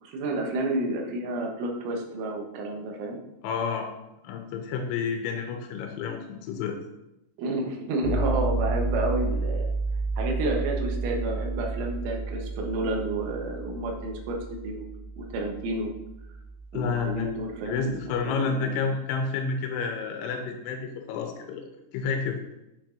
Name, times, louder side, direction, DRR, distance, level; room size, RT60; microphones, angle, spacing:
voice 1, 0.0-3.2 7.4-9.7 10.2-14.4 14.6-14.9 15.2-15.9 16.7-18.8, right 2 dB, 80° right, 1 dB, 3.5 m, -30 dB
voice 2, 3.4-3.9 4.2-6.8 16.7-17.3 17.7-21.6 21.9-22.4, left 5 dB, 90° left, 3 dB, 3.1 m, -30 dB
sound 1, 8.0-17.9, right 3 dB, 45° right, 3.0 m, -31 dB
8.8 x 7.3 x 2.6 m, 0.92 s
omnidirectional pair, 5.5 m